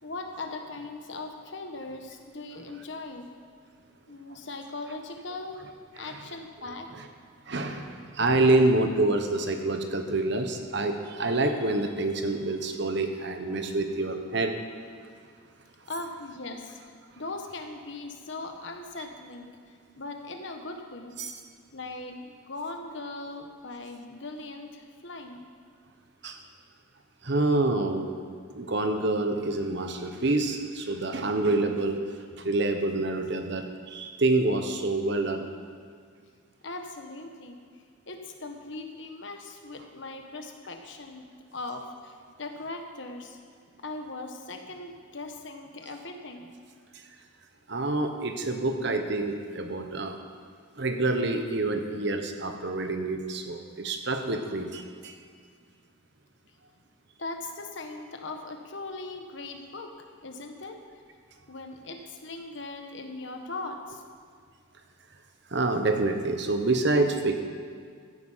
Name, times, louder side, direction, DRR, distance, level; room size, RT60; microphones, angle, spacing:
voice 1, 0.0-3.3 4.1-5.6 5.9-6.9 15.9-16.8 17.2-21.2 21.7-25.5 36.6-37.6 38.1-43.4 43.8-46.5 57.2-59.9 60.2-60.8 61.5-64.0, left 2 dB, 60° left, 4 dB, 1.3 m, -39 dB
voice 2, 7.5-14.6 21.2-21.3 26.2-26.4 27.2-28.2 28.5-32.0 32.4-35.5 47.7-50.2 50.8-55.2 65.5-67.4, right 2 dB, 55° right, 6 dB, 1.2 m, -27 dB
15.0 x 9.8 x 5.7 m, 2.1 s
head